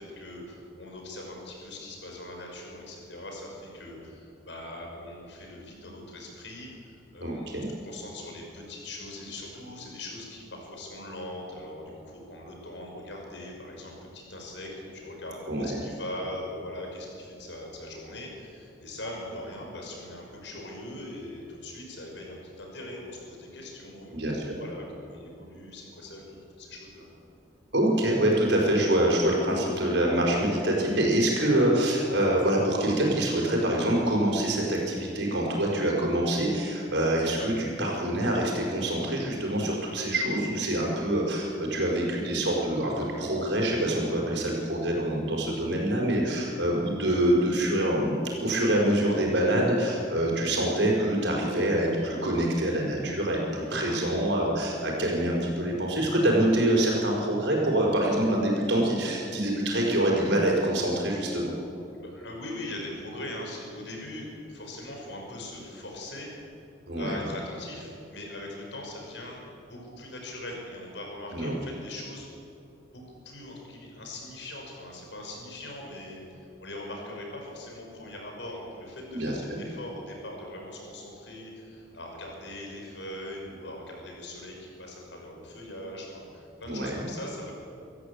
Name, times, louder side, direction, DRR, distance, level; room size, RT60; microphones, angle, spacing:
voice 1, 0.0-24.3 24.6-27.1 53.8-54.1 61.9-66.3 66.9-72.3 72.9-87.5, left 1 dB, 80° left, 0 dB, 6.1 m, -41 dB
voice 2, 7.2-7.7 15.5-15.8 24.1-24.6 27.7-61.5 66.9-67.2 71.3-71.6 79.1-79.6 86.7-87.0, right 1 dB, 75° right, -1 dB, 5.7 m, -25 dB
25.5 x 14.0 x 8.6 m, 2.6 s
head